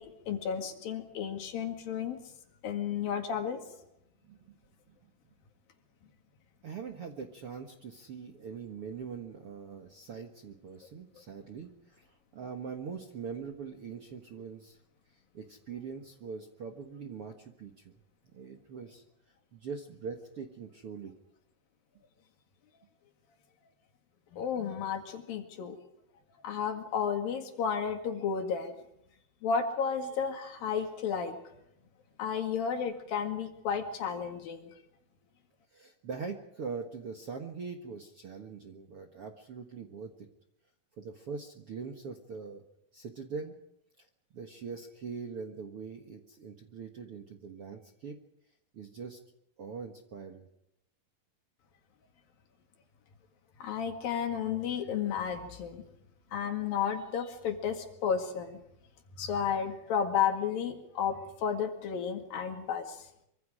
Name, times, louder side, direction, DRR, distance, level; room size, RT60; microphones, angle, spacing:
voice 1, 0.0-2.2 2.6-3.8 24.3-25.8 26.4-28.7 29.4-31.4 32.2-34.7 53.6-55.8 56.3-58.6 59.2-63.0, left 7 dB, 65° left, 5 dB, 3.6 m, -32 dB
voice 2, 6.6-14.8 15.1-17.9 18.3-19.0 19.5-21.1 35.7-40.1 41.0-42.6 42.9-43.5 44.0-44.1 44.3-48.2 48.7-49.2 49.6-50.5, right 5 dB, 55° right, 3 dB, 1.7 m, -42 dB
25.5 x 25.0 x 5.0 m, 0.78 s
omnidirectional pair, 4.6 m